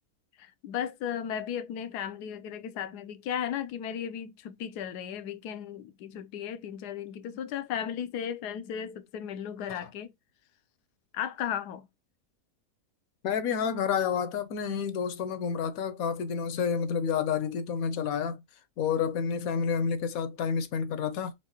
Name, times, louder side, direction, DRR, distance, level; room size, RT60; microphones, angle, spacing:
voice 1, 0.4-10.1 11.1-11.9, left 9 dB, 85° left, 1.2 m, -35 dB
voice 2, 13.2-18.4 18.8-21.3, left 7 dB, 70° left, 1.0 m, -29 dB
4.7 x 2.5 x 2.9 m
omnidirectional pair, 1.7 m